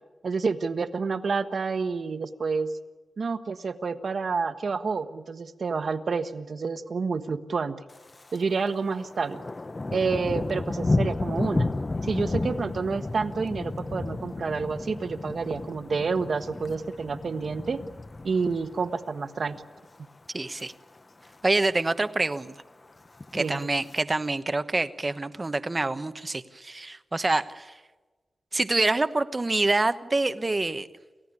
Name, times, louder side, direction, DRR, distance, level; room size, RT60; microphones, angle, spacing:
voice 1, 0.2-2.7 3.2-7.8 8.3-9.4 9.9-11.7 12.0-17.8 18.2-19.6 23.4-23.7, right 4 dB, 65° right, 9 dB, 1.3 m, -29 dB
Thunder, 7.9-8.4 8.7-19.1 19.5-19.8 20.3-20.7 21.0-21.1 21.2-21.3 21.7-22.3 23.1-24.0, left 2 dB, 30° left, 0.7 m, -32 dB
voice 2, 20.3-20.7 21.4-22.5 23.3-27.7 28.5-30.9, right 2 dB, 30° right, 11 dB, 1.1 m, -26 dB
29.0 x 16.0 x 9.9 m, 1.3 s
wide cardioid pair, 110°, 0 cm